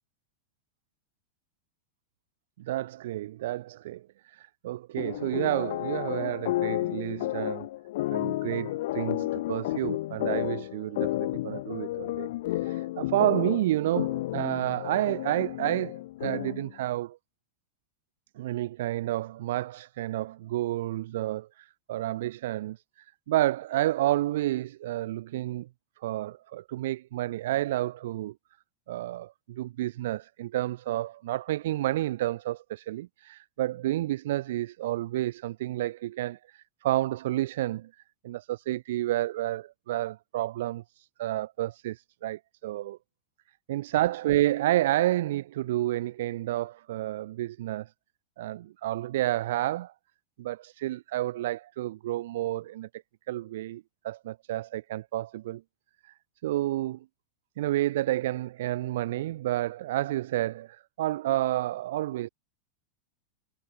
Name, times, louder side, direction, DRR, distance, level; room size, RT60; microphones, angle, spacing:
voice 1, 2.6-7.7 8.1-17.2 18.4-25.7 26.0-28.3 28.9-37.9 38.2-43.0 43.7-47.9 48.4-49.9 50.4-53.0 53.3-55.6 56.0-56.1 56.4-57.0 57.6-62.3, right 15 dB, 65° right, 3.1 m, -30 dB
sound 1, 5.0-16.7, left 16 dB, 60° left, 2.5 m, -32 dB
supercardioid pair, 165°, 0 cm